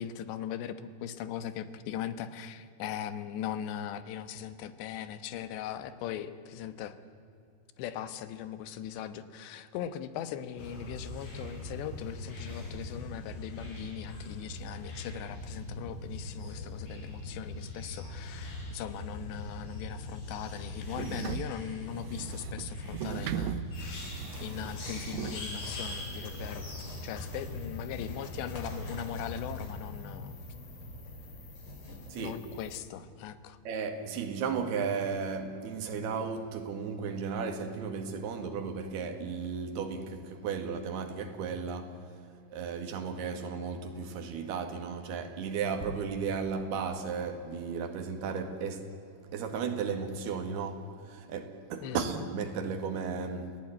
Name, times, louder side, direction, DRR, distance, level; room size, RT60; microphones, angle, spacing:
voice 1, 0.0-7.0 7.8-26.7 27.0-30.4 32.1-33.6 51.8-52.1, left 10 dB, 75° left, 3.2 m, -40 dB
sound 1, 10.6-29.7, left 1 dB, 50° left, 6.7 m, -41 dB
sound 2, 20.4-25.4, right 9 dB, 85° right, 2.0 m, -38 dB
sound 3, 23.7-32.8, left 1 dB, 35° left, 3.1 m, -46 dB
voice 2, 33.7-42.2 42.5-48.9 49.3-53.6, right 5 dB, 65° right, 3.8 m, -35 dB
29.5 x 17.0 x 9.8 m
omnidirectional pair, 5.3 m